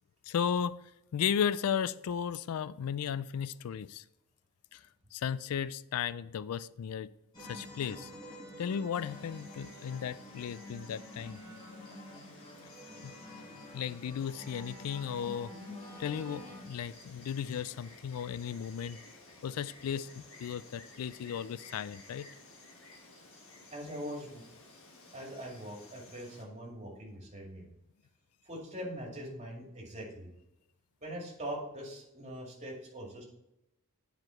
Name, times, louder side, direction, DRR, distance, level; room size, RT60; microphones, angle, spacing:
voice 1, 0.3-0.8 1.1-4.0 4.7-4.8 5.1-7.1 7.4-8.1 8.6-11.4 13.0-13.2 13.7-15.5 16.0-19.0 19.4-22.3, left 8 dB, 85° left, 17 dB, 0.3 m, -35 dB
sound 1, 7.3-16.6, left 1 dB, 20° left, 1.7 m, -48 dB
Insect, 8.9-26.4, left 2 dB, 65° left, 1.7 m, -55 dB
voice 2, 23.7-24.4 25.1-27.7 28.5-30.3 31.0-33.2, equal, 30° right, -2 dB, 2.3 m, -42 dB
9.6 x 4.9 x 4.4 m, 0.88 s
head